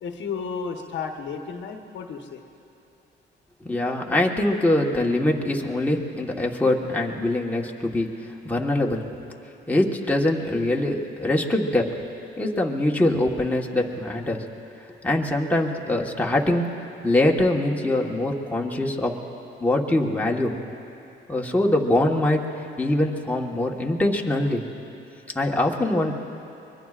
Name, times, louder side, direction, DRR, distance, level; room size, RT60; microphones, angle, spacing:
voice 1, 0.0-2.4, left 5 dB, 65° left, 4 dB, 1.2 m, -33 dB
voice 2, 3.6-9.1 9.7-11.9 12.4-14.4 15.0-16.7 17.0-19.1 19.6-20.5 21.3-22.5 22.8-24.6 25.3-26.1, left 1 dB, 10° left, -1 dB, 1.4 m, -23 dB
24.0 x 22.0 x 2.5 m, 2.8 s
cardioid pair, 90°, 20 cm